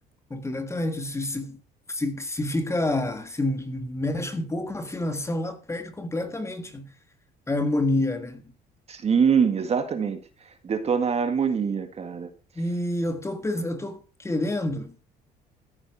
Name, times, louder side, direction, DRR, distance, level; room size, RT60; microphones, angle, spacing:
voice 1, 0.3-1.6 1.9-6.9 7.5-8.5 12.5-15.0, left 1 dB, 15° left, 1.7 m, -28 dB
voice 2, 8.9-10.2 10.6-12.3, right 6 dB, 40° right, 2.0 m, -23 dB
14.5 x 8.9 x 4.8 m
cardioid pair, 110°, 17 cm